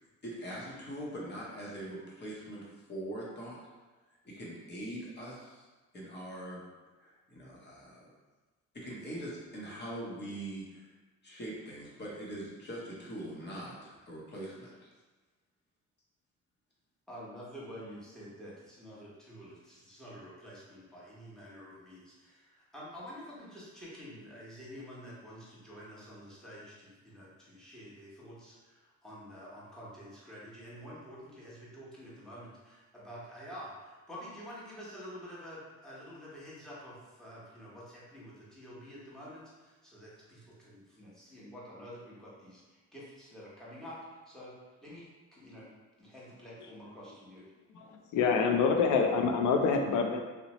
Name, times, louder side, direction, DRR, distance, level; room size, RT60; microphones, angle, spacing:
voice 1, 0.2-3.6 4.2-5.7 5.9-6.6 7.0-8.1 8.7-10.9 11.2-14.9, right 1 dB, 35° left, -5 dB, 0.8 m, -42 dB
voice 2, 17.1-44.0 44.3-44.5 44.8-45.7 46.0-47.4, equal, ahead, -8 dB, 0.9 m, -48 dB
voice 3, 47.7-50.2, left 5 dB, 75° left, 4 dB, 0.4 m, -26 dB
2.7 x 2.1 x 2.9 m, 1.2 s
cardioid pair, 90°, 30 cm